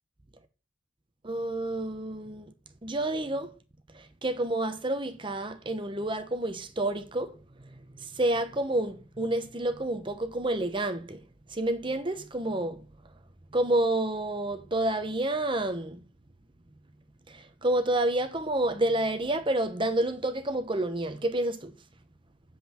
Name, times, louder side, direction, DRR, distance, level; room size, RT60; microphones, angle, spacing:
voice 1, 1.2-2.5 2.8-3.5 3.9-7.3 7.6-11.2 11.5-12.9 13.5-16.1 17.3-21.7, right 1 dB, 25° right, 1.0 m, -29 dB
8.1 x 7.6 x 4.4 m
head